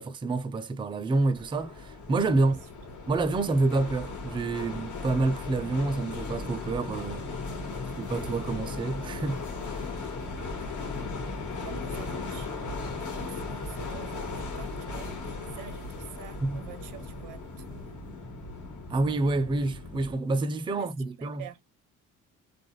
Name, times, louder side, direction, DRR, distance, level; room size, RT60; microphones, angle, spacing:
voice 1, 0.0-2.6 3.1-7.2 8.0-9.9 16.4-16.6 18.9-21.5, right 3 dB, 15° right, 0.4 m, -28 dB
sound 1, 1.4-20.1, left 3 dB, 75° left, 1.3 m, -37 dB
voice 2, 7.7-8.3 11.5-12.6 13.0-18.0 20.8-21.6, right 9 dB, 85° right, 0.6 m, -47 dB
2.3 x 2.1 x 3.0 m
cardioid pair, 90°, 30 cm